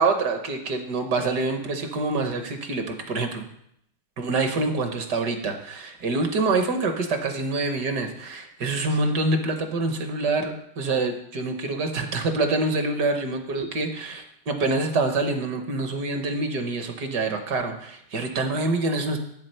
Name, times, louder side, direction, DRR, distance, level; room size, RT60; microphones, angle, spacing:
voice 1, 0.0-3.5 4.2-19.2, right 3 dB, 60° right, 6 dB, 1.4 m, -26 dB
8.2 x 7.7 x 5.4 m, 0.71 s
omnidirectional pair, 2.3 m